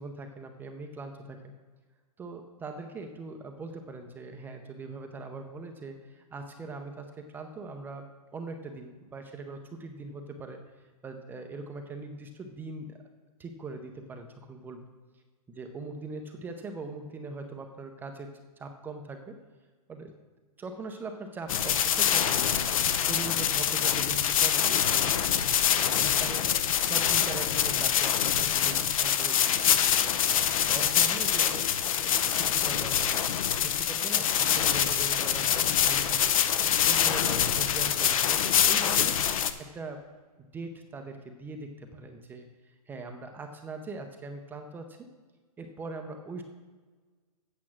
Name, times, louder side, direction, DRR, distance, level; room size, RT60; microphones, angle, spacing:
voice 1, 0.0-1.5 2.2-8.1 8.3-13.0 13.4-14.8 15.5-19.4 19.9-20.1 20.6-22.7 23.0-25.1 25.8-26.5 26.8-30.2 30.5-31.7 32.0-33.2 33.5-36.4 36.8-39.2 39.7-40.0 40.5-45.1 45.6-46.4, right 3 dB, 10° right, 5 dB, 0.6 m, -41 dB
sound 1, 21.5-39.5, left 9 dB, 60° left, 0.8 m, -25 dB
8.5 x 7.3 x 6.1 m, 1.4 s
hypercardioid pair, 150°, 20 cm